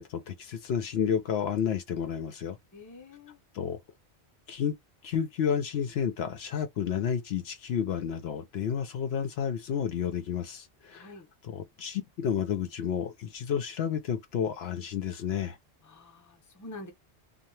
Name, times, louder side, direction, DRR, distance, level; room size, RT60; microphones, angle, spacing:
voice 1, 0.0-2.6 3.5-3.8 4.5-4.8 5.0-11.1 11.4-15.6, left 8 dB, 70° left, 0.8 m, -31 dB
voice 2, 2.7-3.4 10.9-11.3 15.9-16.9, left 2 dB, 20° left, 0.7 m, -46 dB
2.8 x 2.2 x 3.1 m
omnidirectional pair, 1.2 m